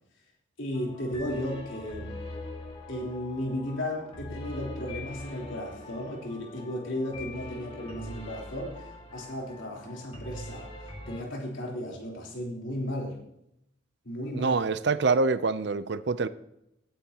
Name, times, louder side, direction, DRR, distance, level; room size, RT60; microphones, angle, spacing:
voice 1, 0.6-2.2 2.9-8.8 9.1-10.7 11.1-13.2 14.0-14.6, left 1 dB, 75° left, 3.7 m, -35 dB
sound 1, 0.7-11.2, left 1 dB, 30° left, 1.9 m, -42 dB
voice 2, 14.3-16.3, right 4 dB, 60° right, 0.5 m, -25 dB
17.0 x 9.3 x 2.9 m
head